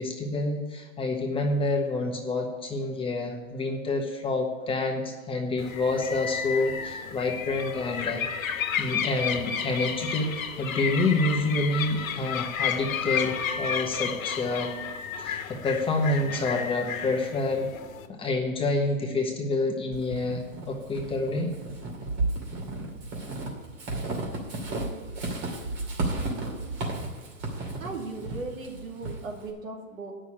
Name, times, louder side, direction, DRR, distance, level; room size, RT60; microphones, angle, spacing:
voice 1, 0.0-8.2 8.8-10.3 10.6-14.7 15.2-17.7 18.1-21.5, left 2 dB, 15° left, 1 dB, 1.2 m, -28 dB
sound 1, 5.6-18.1, left 8 dB, 75° left, 1.2 m, -32 dB
Walk footsteps / Squeak, 19.9-29.5, right 2 dB, 35° right, 2.4 m, -33 dB
voice 2, 27.8-30.1, right 3 dB, 75° right, 1 dB, 2.7 m, -37 dB
9.4 x 6.2 x 8.6 m, 1.4 s
hypercardioid pair, 135°, 41 cm